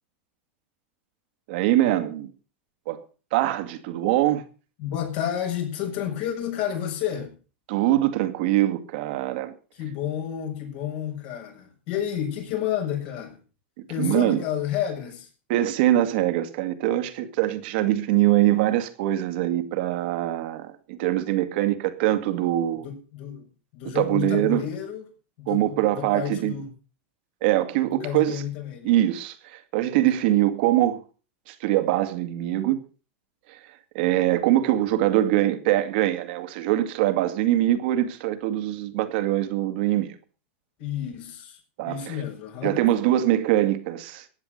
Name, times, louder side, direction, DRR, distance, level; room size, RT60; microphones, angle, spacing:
voice 1, 1.5-2.3 2.9-3.0 3.3-4.4 7.7-9.5 14.0-14.4 15.5-22.8 24.0-24.6 25.5-26.5 27.4-28.4 28.8-31.0 31.5-32.8 33.5-33.6 33.9-40.2 41.8-42.1 42.6-44.3, right 14 dB, 60° right, 2.1 m, -23 dB
voice 2, 4.8-7.4 9.7-13.4 13.9-15.3 22.8-25.0 25.4-26.7 27.9-29.0 40.8-41.6 41.8-42.8, left 10 dB, 60° left, 7.3 m, -30 dB
15.5 x 9.7 x 6.6 m
supercardioid pair, 130°, 6 cm